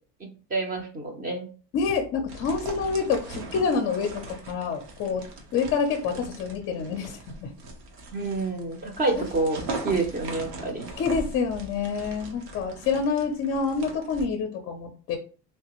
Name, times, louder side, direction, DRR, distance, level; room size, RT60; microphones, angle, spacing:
voice 1, 0.2-1.5 8.1-9.6 9.8-10.9, right 3 dB, 25° right, 4 dB, 0.6 m, -28 dB
voice 2, 1.7-5.2 5.5-7.5 9.2-9.3 11.0-15.2, left 5 dB, 40° left, 4 dB, 0.5 m, -27 dB
sound 1, 2.3-14.2, right 2 dB, 85° right, 1.2 m, -40 dB
3.3 x 3.2 x 2.9 m, 0.39 s
cardioid pair, 145°, 38 cm